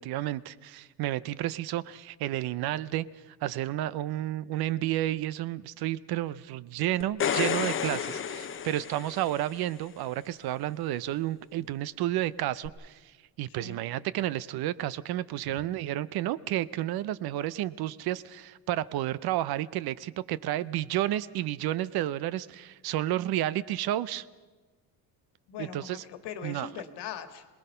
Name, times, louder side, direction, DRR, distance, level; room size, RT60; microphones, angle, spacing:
voice 1, 0.0-24.3 25.6-26.1 26.4-26.7, right 14 dB, 60° right, 18 dB, 0.7 m, -31 dB
sound 1, 7.0-9.6 12.6-12.7, left 8 dB, 30° left, 0.7 m, -31 dB
voice 2, 25.5-27.5, left 8 dB, 75° left, 9 dB, 1.8 m, -41 dB
26.5 x 19.5 x 5.6 m, 1.3 s
cardioid pair, 160°, 42 cm